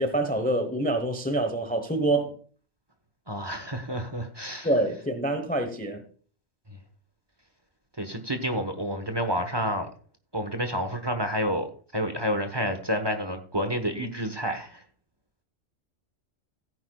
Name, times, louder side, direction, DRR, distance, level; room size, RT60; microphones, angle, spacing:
voice 1, 0.0-2.3 4.6-6.0, right 1 dB, 10° left, 0.9 m, -26 dB
voice 2, 3.3-4.7 8.0-9.9 10.3-11.7 11.9-14.8, equal, 20° right, 1.2 m, -29 dB
15.5 x 9.5 x 2.3 m
omnidirectional pair, 1.3 m